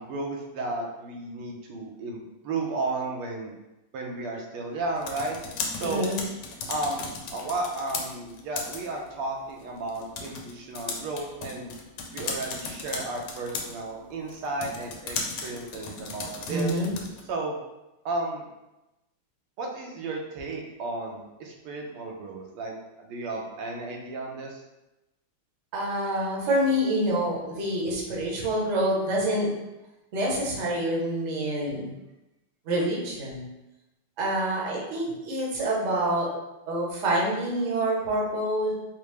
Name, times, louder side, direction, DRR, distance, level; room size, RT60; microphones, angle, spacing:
voice 1, 0.0-3.5 3.9-5.4 5.8-6.1 6.7-7.0 7.3-11.7 12.1-16.7 17.3-17.6 18.0-18.4 19.6-22.7 23.0-24.6, right 2 dB, 90° right, 1 dB, 1.5 m, -33 dB
sound 1, 4.8-17.3, left 4 dB, 80° left, 1.5 m, -37 dB
voice 2, 5.8-6.2 16.5-16.9 25.7-29.5 30.1-31.9 32.7-33.5 34.2-36.3 36.7-38.7, right 1 dB, 55° right, -3 dB, 0.8 m, -27 dB
4.3 x 2.0 x 3.2 m, 0.96 s
omnidirectional pair, 2.4 m